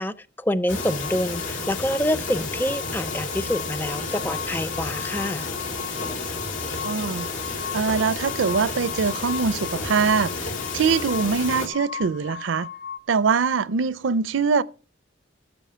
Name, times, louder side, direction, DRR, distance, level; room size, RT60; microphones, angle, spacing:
voice 1, 0.0-5.5, left 1 dB, 10° left, 0.4 m, -27 dB
sound 1, 0.7-11.7, left 3 dB, 80° left, 3.2 m, -31 dB
sound 2, 0.8-13.0, left 7 dB, 55° left, 0.8 m, -38 dB
voice 2, 6.8-7.3 7.7-12.7 13.1-14.6, right 5 dB, 75° right, 0.5 m, -23 dB
12.0 x 7.3 x 5.6 m
head